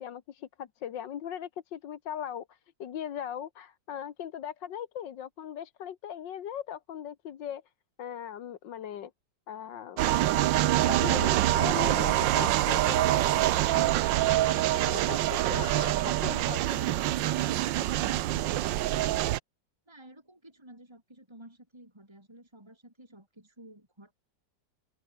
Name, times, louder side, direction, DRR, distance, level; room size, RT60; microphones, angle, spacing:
voice 1, 0.0-7.6 8.0-9.1 9.5-10.2 10.9-13.2 14.9-17.0, left 9 dB, 75° left, 1.8 m, -39 dB
sound 1, 10.0-19.4, right 14 dB, 80° right, 1.4 m, -25 dB
voice 2, 19.9-24.1, right 1 dB, 15° right, 5.1 m, -52 dB
open air
omnidirectional pair, 2.0 m